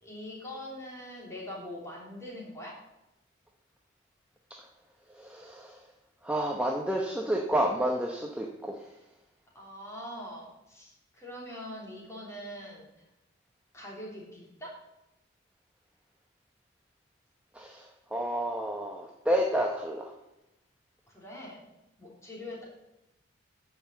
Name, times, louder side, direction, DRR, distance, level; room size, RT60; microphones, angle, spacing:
voice 1, 0.0-2.7 9.5-12.9 13.7-14.7 21.1-21.6 22.0-22.6, left 1 dB, 15° left, -4 dB, 3.3 m, -43 dB
voice 2, 5.2-5.8 6.2-8.8 17.5-20.1, right 1 dB, 5° right, 0 dB, 0.8 m, -30 dB
10.5 x 5.6 x 7.6 m, 0.90 s
head